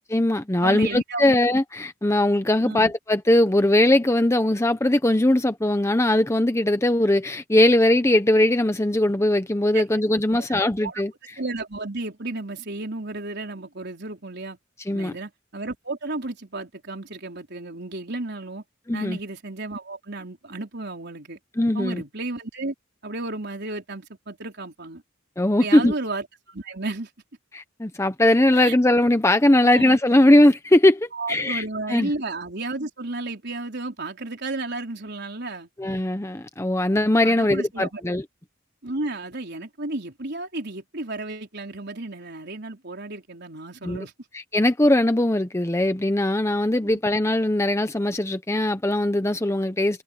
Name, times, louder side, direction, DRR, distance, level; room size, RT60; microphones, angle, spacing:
voice 1, 0.1-11.1 14.9-15.1 18.9-19.2 21.6-22.0 25.4-25.9 27.5-31.6 31.9-32.1 35.8-38.2 43.8-44.0 44.5-50.0, left 1 dB, 15° left, 0.8 m, -20 dB
voice 2, 0.6-1.4 2.6-2.9 9.7-9.8 10.3-11.0 11.4-14.6 14.9-18.6 18.9-21.4 21.7-22.7 23.0-25.0 25.6-27.1 28.5-28.8 29.6-30.0 31.1-35.7 37.2-38.0 38.8-44.1 46.9-47.0, right 2 dB, 55° right, 4.4 m, -33 dB
head